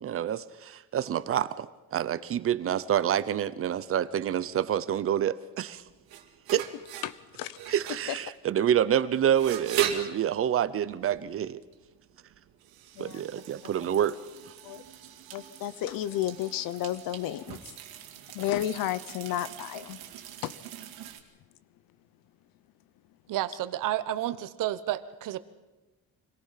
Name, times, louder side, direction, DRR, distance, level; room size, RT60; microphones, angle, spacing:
voice 1, 0.0-5.8 6.5-6.6 7.7-11.6 13.0-14.2 14.4-14.5, right 10 dB, 40° right, 16 dB, 0.8 m, -27 dB
sound 1, 5.7-21.2, right 10 dB, 85° right, 2.4 m, -39 dB
voice 2, 7.0-7.7 8.1-8.2 13.0-13.2 14.6-14.8 15.3-17.6 18.3-20.0 20.4-20.5, left 12 dB, 70° left, 17 dB, 0.9 m, -32 dB
voice 3, 23.3-25.4, right 13 dB, 60° right, 14 dB, 1.1 m, -31 dB
25.5 x 18.0 x 5.8 m, 1.1 s
cardioid pair, 150°, 35 cm